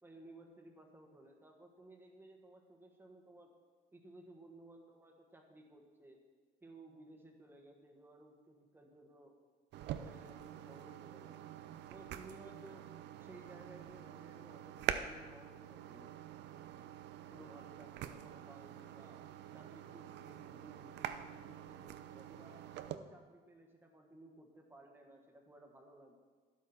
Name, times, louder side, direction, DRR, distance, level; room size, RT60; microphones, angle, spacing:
voice 1, 0.0-3.5 3.9-6.2 6.6-9.4 9.8-11.5 11.9-12.8 13.2-16.1 17.3-19.2 19.5-22.6 22.9-26.1, right 1 dB, 10° right, 2 dB, 1.4 m, -58 dB
sound 1, 9.7-23.0, right 10 dB, 70° right, 0.6 m, -45 dB
12.0 x 11.5 x 4.3 m, 1.5 s
cardioid pair, 160°, 18 cm